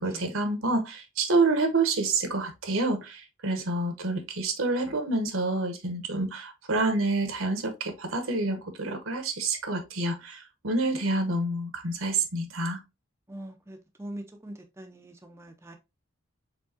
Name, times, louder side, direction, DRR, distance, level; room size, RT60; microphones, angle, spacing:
voice 1, 0.0-12.8, right 2 dB, 80° right, 1.1 m, -28 dB
voice 2, 13.3-15.8, right 1 dB, 15° right, 0.5 m, -43 dB
4.5 x 3.4 x 2.7 m
head